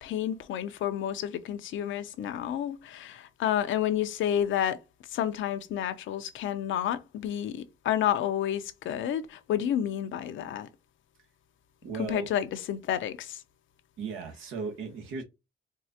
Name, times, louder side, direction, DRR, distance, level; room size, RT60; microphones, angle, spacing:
voice 1, 0.0-4.8 5.1-10.7 12.1-13.4, left 10 dB, 75° left, 0.7 m, -30 dB
voice 2, 11.8-12.3 14.0-15.2, right 5 dB, 85° right, 1.4 m, -36 dB
4.5 x 2.4 x 2.7 m
cardioid pair, 90°, 20 cm